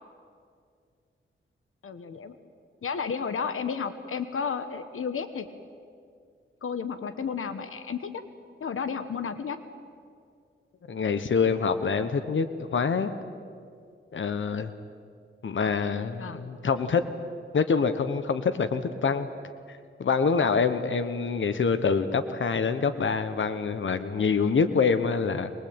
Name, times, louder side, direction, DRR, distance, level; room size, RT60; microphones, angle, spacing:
voice 1, 1.8-2.4 2.8-5.5 6.6-8.2 8.6-9.6 16.2-16.4, left 6 dB, 80° left, 10 dB, 1.2 m, -32 dB
voice 2, 10.9-13.1 14.1-14.7 15.4-17.0 17.5-19.3 20.0-25.5, left 5 dB, 65° left, 10 dB, 1.2 m, -25 dB
24.0 x 21.0 x 8.8 m, 2.3 s
wide cardioid pair, 85°, 21 cm